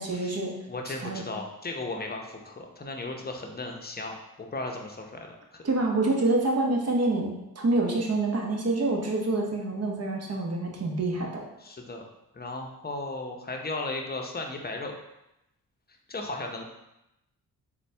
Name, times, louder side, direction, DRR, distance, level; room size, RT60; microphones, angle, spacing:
voice 1, 0.0-0.5 0.9-1.2 5.6-11.4, right 2 dB, 40° right, 0 dB, 0.9 m, -27 dB
voice 2, 0.7-5.6 11.6-12.0 12.3-14.9 16.1-16.6, left 2 dB, 25° left, 2 dB, 0.7 m, -36 dB
4.0 x 2.2 x 3.3 m, 0.88 s
cardioid pair, 55°, 38 cm